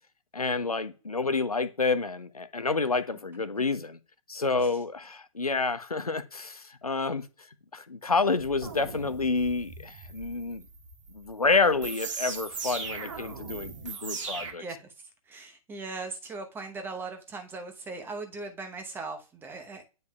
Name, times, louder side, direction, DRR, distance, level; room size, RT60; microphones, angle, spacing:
voice 1, 0.3-4.0 4.3-7.3 7.7-10.6 11.1-14.6, left 4 dB, 90° left, 11 dB, 0.7 m, -28 dB
sound 1, 8.4-14.5, right 5 dB, 55° right, 1.6 m, -39 dB
voice 2, 14.6-14.9 15.3-19.8, right 3 dB, 10° right, 5 dB, 0.9 m, -39 dB
9.2 x 5.3 x 2.3 m, 0.33 s
figure-of-eight pair, 120°, 18 cm